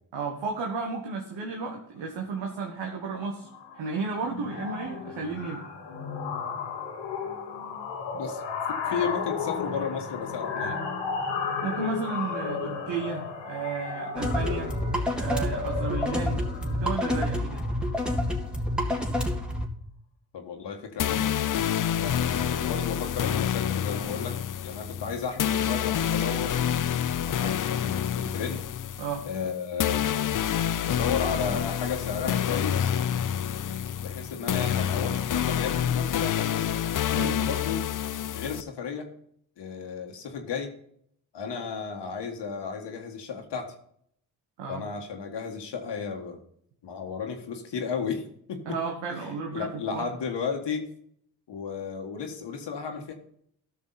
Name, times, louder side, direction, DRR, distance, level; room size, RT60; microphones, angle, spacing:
voice 1, 0.1-3.5 3.7-5.6 11.6-14.8 15.1-17.6 29.0-29.3 37.1-37.4 44.6-44.8 48.6-50.1, right 4 dB, 75° right, 1 dB, 1.5 m, -33 dB
sound 1, 2.3-2.6 2.9-3.2 3.4-18.3, left 5 dB, 90° left, 1.5 m, -34 dB
voice 2, 8.7-10.8 20.3-21.4 22.0-24.4 24.6-26.6 27.2-28.6 29.2-30.4 30.8-32.9 34.0-36.7 37.1-37.8 38.3-39.1 39.6-40.7 41.3-43.7 44.7-46.4 46.8-48.8 49.1-50.9 51.5-53.1, left 6 dB, 70° left, 3 dB, 1.6 m, -34 dB
sound 2, 14.2-19.7, left 1 dB, ahead, 2.1 m, -28 dB
sound 3, 21.0-38.6, left 9 dB, 45° left, 0.6 m, -28 dB
13.0 x 6.2 x 4.0 m, 0.66 s
supercardioid pair, 45°, 44 cm